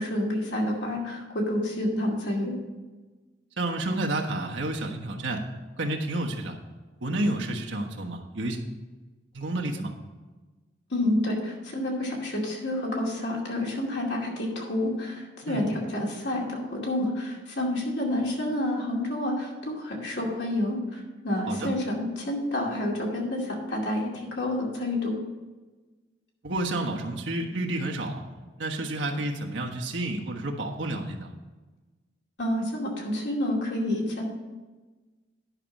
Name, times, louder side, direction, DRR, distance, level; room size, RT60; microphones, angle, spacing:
voice 1, 0.0-2.5 10.9-25.1 32.4-34.2, left 1 dB, 65° left, -2 dB, 2.5 m, -29 dB
voice 2, 3.6-5.4 5.8-6.6 7.0-8.6 9.3-9.9 15.4-15.7 21.5-21.7 26.4-28.2 28.6-31.3, right 2 dB, 80° right, 1 dB, 1.3 m, -30 dB
10.5 x 5.9 x 5.2 m, 1.2 s
head